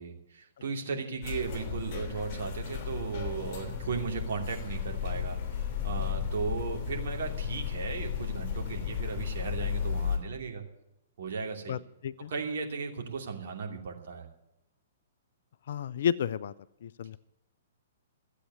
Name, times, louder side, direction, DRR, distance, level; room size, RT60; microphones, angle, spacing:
voice 1, 0.0-10.6 11.2-11.8 12.3-14.3, right 5 dB, 55° right, 1 dB, 2.7 m, -36 dB
sound 1, 1.2-10.2, left 8 dB, 35° left, 3.0 m, -34 dB
voice 2, 11.7-12.3 15.7-16.5 16.8-17.2, left 8 dB, 55° left, 17 dB, 0.4 m, -32 dB
14.0 x 8.3 x 9.4 m, 0.87 s
figure-of-eight pair, 115°, 0 cm